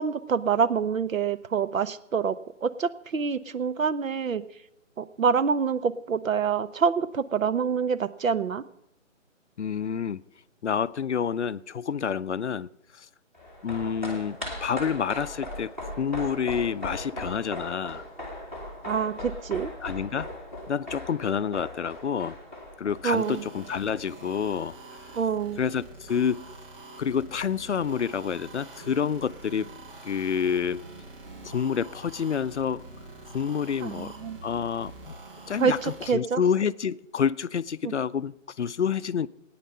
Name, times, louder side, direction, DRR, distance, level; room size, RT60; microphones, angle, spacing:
voice 1, 0.0-2.4 2.6-4.4 5.0-8.6 18.9-19.7 23.0-23.4 25.1-25.6 33.8-34.4 35.6-36.4 37.8-37.9, right 6 dB, 80° right, 14 dB, 0.9 m, -26 dB
voice 2, 9.6-10.2 10.6-13.1 13.6-15.7 16.0-18.0 19.8-20.3 20.7-22.4 22.8-24.8 25.6-26.4 27.0-29.7 30.0-30.8 31.4-32.8 33.3-34.1 34.4-35.1 35.5-39.3, left 7 dB, 60° left, 16 dB, 0.5 m, -28 dB
sound 1, 13.3-23.9 24.2-24.3, left 1 dB, 10° right, 1.2 m, -38 dB
sound 2, 23.1-36.1, right 2 dB, 40° right, 3.1 m, -45 dB
17.0 x 9.4 x 5.5 m, 0.81 s
hypercardioid pair, 180°, 40 cm